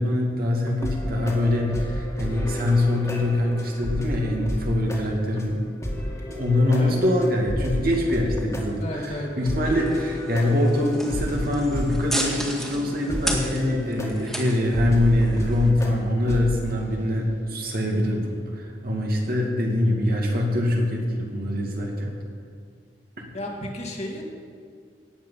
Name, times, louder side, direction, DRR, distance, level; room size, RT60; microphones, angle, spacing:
voice 1, 0.0-5.6 6.3-22.1 23.2-23.3, left 1 dB, 55° right, 0 dB, 2.3 m, -24 dB
sound 1, 0.7-4.6 4.9-5.0 5.4-5.5 5.8-8.6 9.0-9.1 9.5-11.9 12.2-12.3 12.7-12.8 13.1-15.9 16.3-16.5, left 1 dB, 20° left, 2.2 m, -32 dB
voice 2, 8.8-9.5 23.3-24.2, left 1 dB, 40° left, 0 dB, 2.1 m, -33 dB
sound 2, 9.6-15.7, equal, ahead, 1.9 m, -34 dB
18.0 x 8.1 x 5.7 m, 2.2 s
head